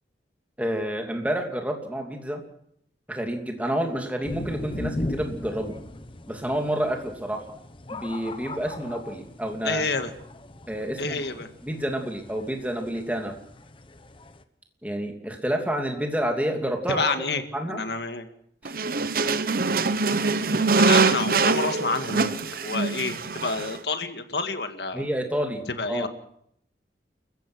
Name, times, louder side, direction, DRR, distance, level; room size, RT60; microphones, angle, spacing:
voice 1, 0.6-2.4 3.1-5.7 6.3-7.4 7.9-9.8 10.7-11.2 11.6-13.3 14.8-17.2 17.5-17.8 18.6-18.7 24.9-25.6 25.9-26.1, right 1 dB, 10° right, 3 dB, 2.8 m, -29 dB
sound 1, 4.2-14.4, left 1 dB, 30° left, 1.1 m, -38 dB
voice 2, 9.6-10.1 11.0-11.5 16.9-17.4 17.7-18.3 20.8-22.4 22.6-25.1 25.7-26.1, left 3 dB, 70° left, 8 dB, 1.9 m, -29 dB
sound 2, 18.7-23.8, right 4 dB, 55° right, 1.0 m, -23 dB
29.0 x 15.0 x 6.3 m, 0.70 s
head